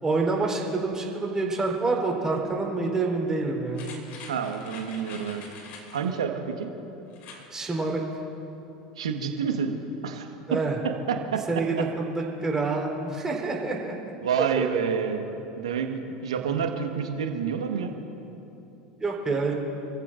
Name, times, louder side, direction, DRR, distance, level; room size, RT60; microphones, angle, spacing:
voice 1, 0.0-3.9 7.5-8.0 10.5-10.8 11.5-13.9 14.4-14.7 19.0-19.5, right 3 dB, 20° right, -1 dB, 4.0 m, -27 dB
sound 1, 3.7-6.1 7.1-7.5 7.9-8.0, left 4 dB, 55° left, 2.9 m, -45 dB
voice 2, 4.3-5.4 5.9-6.7 9.0-9.7 10.0-10.3 11.1-11.4 14.2-15.2 15.6-17.9, right 7 dB, 80° right, 4 dB, 1.5 m, -28 dB
28.0 x 15.0 x 2.6 m, 3.0 s
hypercardioid pair, 80°, 3 cm